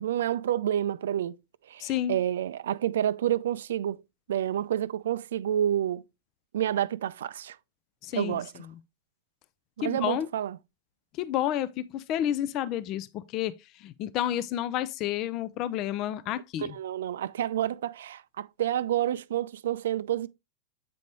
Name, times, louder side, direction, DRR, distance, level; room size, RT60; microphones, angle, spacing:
voice 1, 0.0-1.3 1.7-4.0 4.3-6.0 6.5-7.6 8.1-8.5 9.8-10.6 16.6-20.3, right 11 dB, 60° right, 0.4 m, -29 dB
voice 2, 1.8-2.2 8.0-8.4 9.8-10.3 11.2-13.5 13.8-16.8, left 11 dB, 40° left, 0.5 m, -30 dB
8.4 x 5.2 x 3.0 m
figure-of-eight pair, 90°, 0 cm